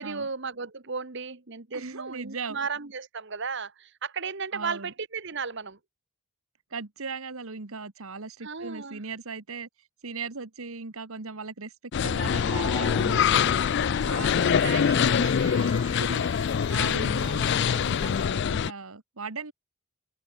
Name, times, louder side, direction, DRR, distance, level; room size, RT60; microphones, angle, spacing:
voice 1, 0.0-5.8 8.4-9.0 14.1-16.3, right 5 dB, 55° right, 1.3 m, -35 dB
voice 2, 1.7-2.6 4.5-4.9 6.7-9.7 10.0-11.7 12.0-13.5 14.0-15.5 16.7-19.5, right 4 dB, 75° right, 1.4 m, -38 dB
sound 1, 11.9-18.7, left 7 dB, 50° left, 0.3 m, -24 dB
sound 2, 12.5-18.3, right 4 dB, 15° right, 0.4 m, -45 dB
head